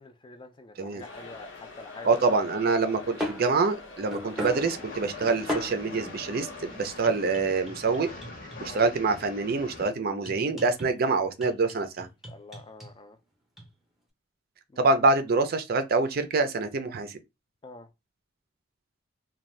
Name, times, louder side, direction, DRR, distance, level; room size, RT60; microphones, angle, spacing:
voice 1, 0.0-2.1 4.2-4.4 8.6-8.8 12.2-13.2 14.7-14.9 17.6-17.9, left 2 dB, 25° left, 0.4 m, -46 dB
sound 1, 1.0-7.8, left 4 dB, 90° left, 0.9 m, -45 dB
voice 2, 2.0-8.1 8.6-12.1 14.8-17.2, right 3 dB, 50° right, 0.5 m, -26 dB
sound 2, 3.2-5.9 7.0-9.1 10.2-11.0 11.4-12.9 13.6-13.7, left 1 dB, ahead, 0.7 m, -38 dB
Train, 4.3-9.9, left 2 dB, 50° left, 0.7 m, -43 dB
2.6 x 2.2 x 3.2 m
head